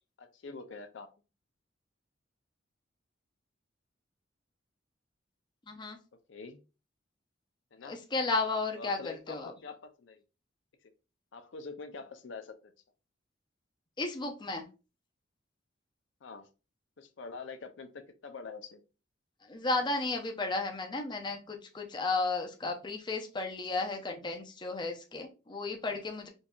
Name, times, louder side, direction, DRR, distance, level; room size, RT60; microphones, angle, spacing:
voice 1, 0.2-1.1 6.3-6.6 7.7-8.0 8.7-10.2 11.3-12.5 16.2-16.5 17.0-18.8, left 4 dB, 75° left, 6 dB, 0.5 m, -45 dB
voice 2, 5.7-6.0 7.8-9.5 14.0-14.7 19.4-26.3, left 3 dB, 25° left, 3 dB, 0.6 m, -33 dB
4.5 x 2.6 x 2.3 m, 0.31 s
head